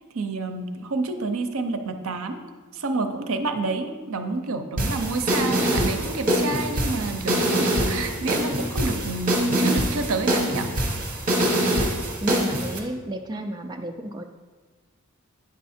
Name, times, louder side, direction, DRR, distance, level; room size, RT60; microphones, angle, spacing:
voice 1, 0.1-2.4 2.7-10.7, right 3 dB, 70° right, 7 dB, 0.6 m, -29 dB
sound 1, 4.8-12.8, right 1 dB, 40° right, 1.2 m, -24 dB
voice 2, 12.2-14.2, right 1 dB, 20° right, 3 dB, 0.4 m, -31 dB
9.4 x 4.6 x 4.2 m, 1.3 s
head